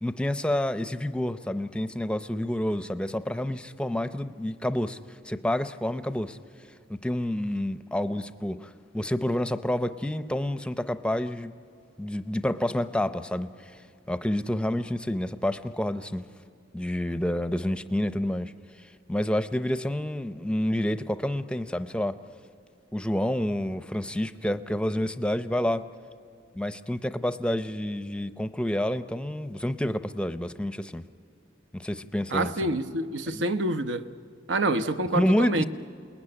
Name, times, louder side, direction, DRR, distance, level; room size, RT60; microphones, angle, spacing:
voice 1, 0.0-5.0 5.2-6.4 6.9-11.5 12.0-13.5 14.1-16.3 16.7-18.5 19.1-22.2 22.9-25.8 26.5-31.0 31.7-32.5 33.3-33.4 35.1-35.6, left 1 dB, 5° left, 0.6 m, -28 dB
voice 2, 32.3-34.0 34.5-35.7, right 2 dB, 75° right, 0.9 m, -27 dB
27.5 x 20.0 x 9.9 m
head